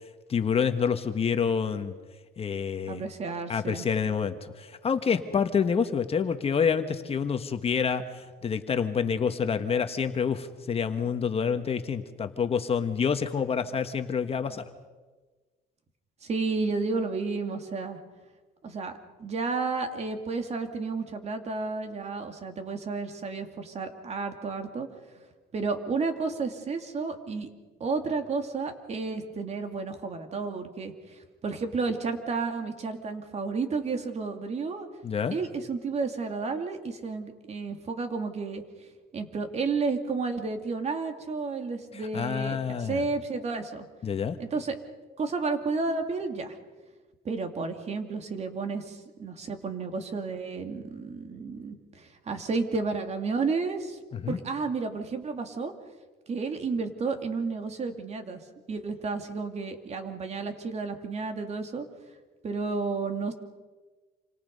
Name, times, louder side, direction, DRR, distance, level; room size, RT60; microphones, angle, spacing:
voice 1, 0.3-1.9 2.4-3.0 3.5-14.7 35.0-35.4 41.9-43.1 44.0-44.4 54.1-54.4, left 6 dB, 35° left, 8 dB, 1.4 m, -28 dB
voice 2, 2.9-3.9 16.2-18.0 18.6-18.9 19.2-24.9 25.5-27.5 27.8-34.9 35.3-38.6 39.1-43.9 44.4-44.8 45.2-46.6 47.2-54.0 54.3-55.7 56.3-58.4 58.7-61.9 62.4-63.3, right 4 dB, 40° right, 6 dB, 2.6 m, -32 dB
28.0 x 25.5 x 5.4 m, 1.3 s
cardioid pair, 110°, 17 cm